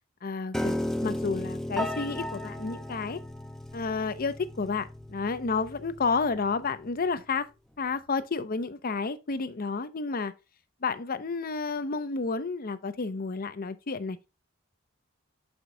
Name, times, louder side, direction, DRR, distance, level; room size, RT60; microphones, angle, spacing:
voice 1, 0.2-3.2 3.7-7.5 7.8-10.3 10.8-14.2, left 4 dB, 45° left, 0.6 m, -31 dB
Piano, 0.5-6.7, left 1 dB, ahead, 0.6 m, -35 dB
7.1 x 5.1 x 3.8 m
head